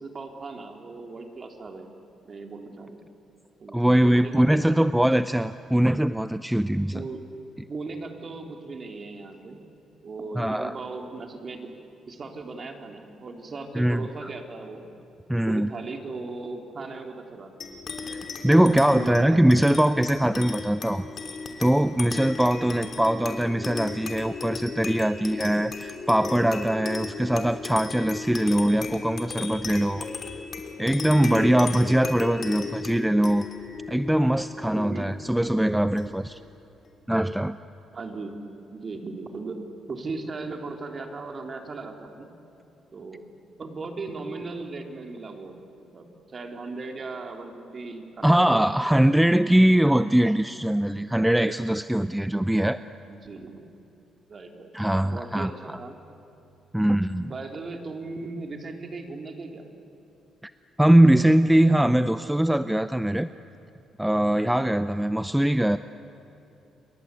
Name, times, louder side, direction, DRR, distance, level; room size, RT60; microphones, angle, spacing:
voice 1, 0.0-1.9 2.2-3.0 3.6-5.0 6.9-7.3 7.7-9.6 10.0-11.7 12.1-14.9 15.5-17.6 18.6-19.6 22.6-22.9 31.2-31.6 34.7-35.2 37.9-38.4 38.7-39.6 39.9-42.3 42.9-43.2 43.6-48.8 53.1-53.7 54.3-54.7 55.0-56.0 57.2-59.6, right 3 dB, 40° right, 4 dB, 3.5 m, -37 dB
voice 2, 3.7-7.0 10.4-10.8 13.7-14.1 15.3-15.7 18.4-21.1 21.6-30.0 30.8-33.5 33.9-36.4 37.1-37.6 48.2-52.8 54.7-55.8 56.7-57.3 60.8-63.3 64.0-65.8, right 1 dB, 5° right, 12 dB, 0.6 m, -22 dB
sound 1, 17.6-36.4, left 4 dB, 45° left, 3.2 m, -36 dB
29.0 x 23.0 x 8.4 m, 2.9 s
cardioid pair, 90°, 0 cm